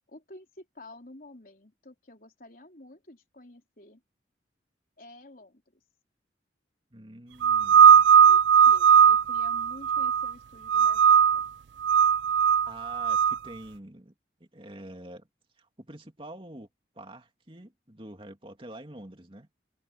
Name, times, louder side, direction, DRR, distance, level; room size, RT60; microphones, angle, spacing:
voice 1, 0.1-4.0 5.0-5.6 8.2-11.5, left 1 dB, 50° left, 4.1 m, -50 dB
voice 2, 6.9-8.1 9.0-9.1 12.7-14.1 14.4-15.3 15.6-16.7 16.9-19.5, right 1 dB, 30° right, 2.6 m, -46 dB
sound 1, 7.4-10.3 10.7-11.5 11.8-13.4, right 7 dB, 80° right, 0.4 m, -18 dB
head